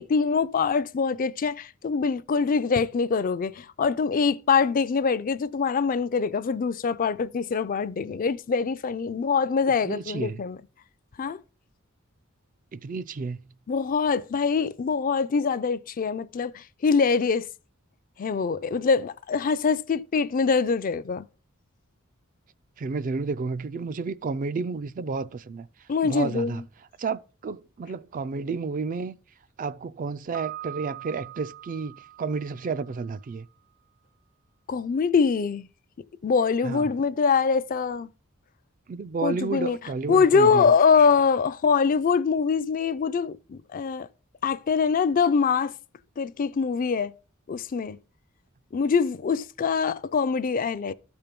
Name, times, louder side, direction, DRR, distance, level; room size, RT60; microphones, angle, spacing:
voice 1, 0.0-10.6 11.2-11.4 13.7-17.5 18.2-21.2 25.9-26.6 34.7-35.7 36.2-38.1 39.2-39.8 40.1-44.1 44.4-45.7 46.2-47.1 47.5-48.0 48.7-50.9, left 5 dB, 40° left, 0.4 m, -24 dB
voice 2, 9.8-10.4 12.7-13.4 22.8-25.7 26.0-26.6 27.0-29.2 29.6-33.5 36.6-36.9 38.9-40.7, right 4 dB, 40° right, 0.4 m, -31 dB
Piano, 30.3-33.2, right 12 dB, 85° right, 2.8 m, -42 dB
13.0 x 4.5 x 5.2 m
head